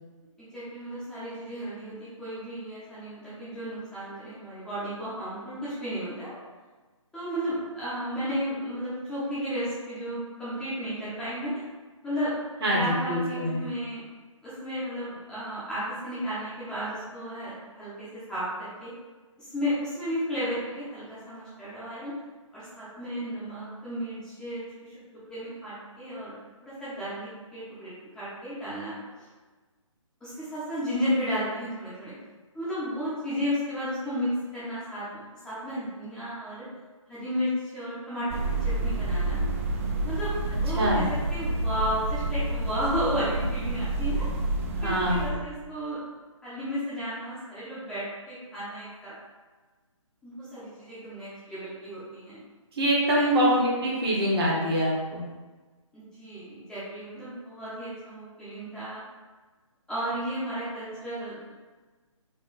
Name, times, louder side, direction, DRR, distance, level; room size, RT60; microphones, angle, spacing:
voice 1, 0.4-6.4 7.1-11.6 12.0-12.3 12.7-14.0 14.4-18.9 19.4-22.1 22.5-24.9 25.3-26.4 26.6-29.3 30.2-32.1 32.5-35.0 35.4-36.7 37.1-39.4 40.0-41.0 41.3-44.3 44.8-46.0 46.4-49.1 50.2-52.4 53.1-53.6 55.9-59.0 59.9-61.5, equal, 5° left, -12 dB, 0.8 m, -33 dB
voice 2, 12.6-13.6 40.7-41.1 44.8-45.2 52.7-55.2, right 1 dB, 50° right, -4 dB, 1.2 m, -25 dB
sound 1, 38.3-45.3, right 2 dB, 25° right, 0.4 m, -29 dB
4.1 x 2.2 x 4.0 m, 1.3 s
figure-of-eight pair, 150°, 17 cm